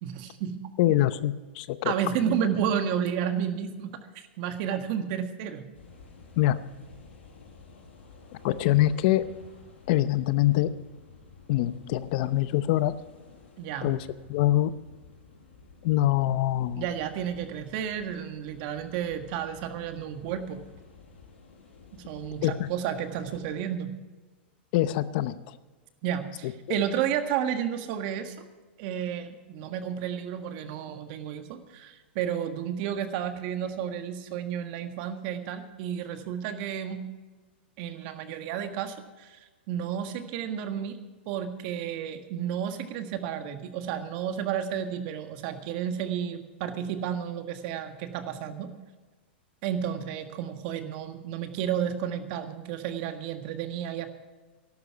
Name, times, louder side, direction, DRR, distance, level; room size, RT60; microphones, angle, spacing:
voice 1, 0.0-0.5 1.8-3.9 4.1-5.7 13.6-13.9 16.7-20.6 21.9-23.9 26.0-28.4 28.8-37.0 37.8-41.0 41.2-48.7 49.6-54.1, right 9 dB, 50° right, 7 dB, 1.6 m, -32 dB
voice 2, 0.8-1.9 6.4-6.6 8.4-9.2 9.9-10.7 11.5-12.9 13.8-14.0 14.3-14.7 15.8-16.9 22.4-22.7 24.7-25.4, left 14 dB, 50° left, 14 dB, 0.7 m, -24 dB
sound 1, 5.7-23.5, left 5 dB, 85° left, 5.0 m, -52 dB
13.5 x 12.0 x 5.9 m, 1.2 s
hypercardioid pair, 135°, 6 cm